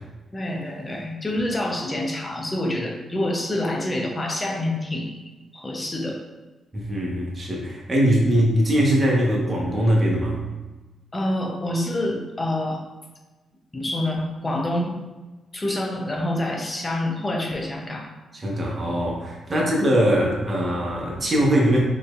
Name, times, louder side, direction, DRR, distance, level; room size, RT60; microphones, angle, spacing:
voice 1, 0.3-5.2 5.5-6.2 11.1-12.8 13.7-15.0 15.5-18.1 19.5-19.6, left 1 dB, 25° left, 1 dB, 0.8 m, -27 dB
voice 2, 6.7-10.4 18.3-21.8, equal, 35° right, -3 dB, 1.2 m, -21 dB
4.4 x 3.3 x 2.5 m, 1.2 s
cardioid pair, 80°, 0 cm